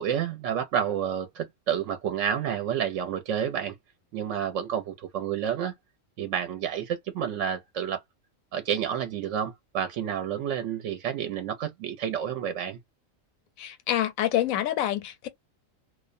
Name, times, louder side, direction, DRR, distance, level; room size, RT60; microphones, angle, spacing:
voice 1, 0.0-3.7 4.1-5.7 6.2-8.0 8.5-12.8, right 9 dB, 70° right, 0.9 m, -29 dB
voice 2, 13.6-15.3, left 12 dB, 85° left, 1.0 m, -27 dB
2.4 x 2.1 x 2.5 m
omnidirectional pair, 1.4 m